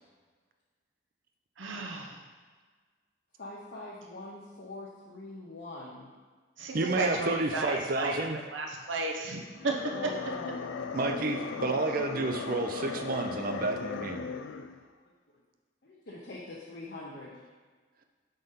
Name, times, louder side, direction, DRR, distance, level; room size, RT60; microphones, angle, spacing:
voice 1, 1.6-2.1 6.6-8.3 8.5-9.9, right 3 dB, 85° right, 0 dB, 0.9 m, -33 dB
voice 2, 3.4-6.1 9.9-11.0 15.8-17.5, left 2 dB, 55° left, -6 dB, 0.9 m, -44 dB
voice 3, 6.7-8.4 10.9-14.3, right 2 dB, 50° right, 5 dB, 0.5 m, -30 dB
sound 1, 9.5-14.8, left 6 dB, 80° left, 0.3 m, -38 dB
5.0 x 4.0 x 5.6 m, 1.5 s
head